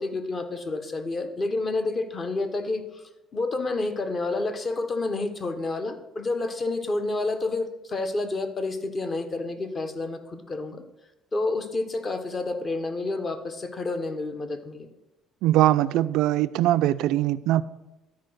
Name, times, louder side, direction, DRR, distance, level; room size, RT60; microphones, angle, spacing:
voice 1, 0.0-3.0 3.3-10.8 11.3-14.9, left 2 dB, 30° left, 1.0 m, -29 dB
voice 2, 15.4-17.6, right 14 dB, 75° right, 0.3 m, -21 dB
12.0 x 4.8 x 6.2 m
cardioid pair, 135°, 0 cm